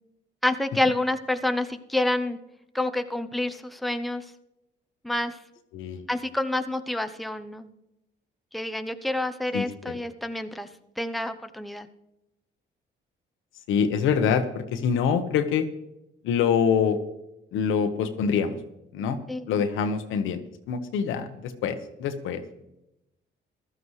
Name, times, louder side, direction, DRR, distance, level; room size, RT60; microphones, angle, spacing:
voice 1, 0.4-2.4 2.7-4.2 5.0-5.4 6.1-7.7 8.5-10.7 11.0-11.9 19.3-19.4, left 1 dB, ahead, 8 dB, 0.8 m, -28 dB
voice 2, 5.7-6.0 9.5-9.9 13.7-15.7 16.2-17.0 17.5-18.6 18.9-19.2 19.5-22.6, left 7 dB, 90° left, 9 dB, 1.1 m, -25 dB
15.0 x 12.5 x 3.2 m, 0.89 s
cardioid pair, 90°, 20 cm